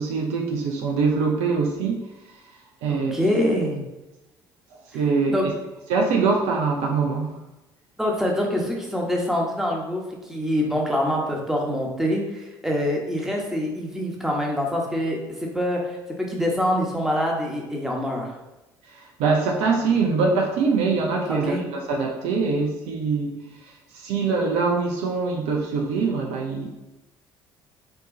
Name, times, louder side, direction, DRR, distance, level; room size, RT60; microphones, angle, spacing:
voice 1, 0.0-2.0 2.8-3.1 4.9-5.5 5.9-7.3 18.9-23.4 23.6-26.7, right 4 dB, 70° right, 1 dB, 0.7 m, -23 dB
voice 2, 2.9-3.8 4.9-5.0 5.3-5.5 8.0-10.0 10.3-15.2 15.5-18.3 21.3-21.6, equal, 5° right, -1 dB, 1.3 m, -25 dB
4.5 x 2.9 x 3.9 m, 1.0 s
hypercardioid pair, 55°, 11 cm